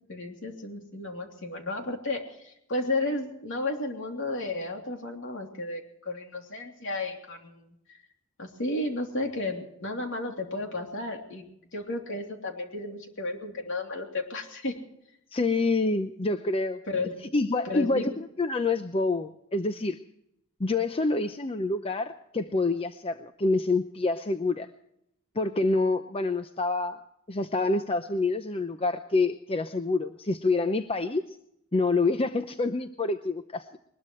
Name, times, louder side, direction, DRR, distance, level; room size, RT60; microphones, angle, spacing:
voice 1, 0.1-7.7 8.4-11.4 11.7-14.8 16.9-17.1 17.6-18.0, left 2 dB, 60° left, 3 dB, 3.1 m, -33 dB
voice 2, 15.3-16.8 17.3-20.0 20.6-24.7 25.4-27.0 27.3-31.2 31.7-33.8, left 3 dB, 30° left, 9 dB, 0.7 m, -27 dB
21.5 x 20.5 x 3.2 m, 0.76 s
head